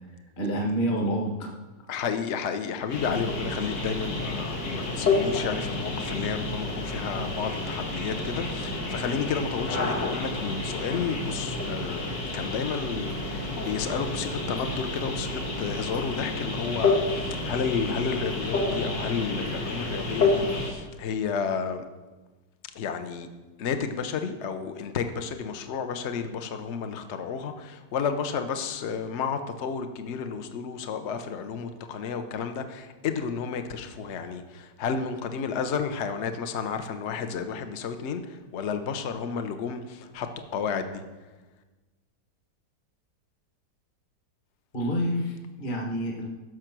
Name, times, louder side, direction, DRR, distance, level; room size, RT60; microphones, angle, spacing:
voice 1, 0.4-1.5 44.7-46.3, equal, 30° left, 1 dB, 1.6 m, -28 dB
voice 2, 1.9-21.8 22.7-23.3 23.6-40.3 40.5-41.0, left 6 dB, 50° left, 8 dB, 1.0 m, -31 dB
sound 1, 2.9-20.7, left 3 dB, 90° left, 2.5 m, -30 dB
15.5 x 6.5 x 6.0 m, 1.2 s
omnidirectional pair, 1.9 m